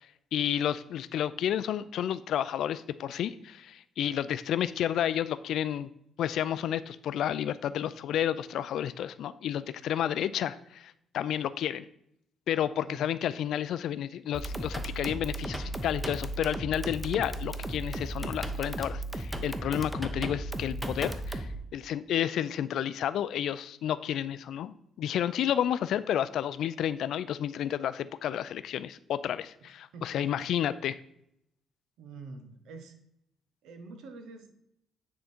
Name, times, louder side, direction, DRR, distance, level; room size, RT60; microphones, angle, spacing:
voice 1, 0.3-5.9 6.2-11.9 12.5-31.0, left 10 dB, 75° left, 15 dB, 0.3 m, -31 dB
voice 2, 12.8-13.2 29.6-30.5 32.0-32.9 33.6-34.5, right 3 dB, 85° right, 7 dB, 1.0 m, -47 dB
sound 1, 14.3-21.6, right 1 dB, ahead, 0.8 m, -35 dB
9.4 x 3.7 x 4.4 m, 0.75 s
cardioid pair, 90°, 0 cm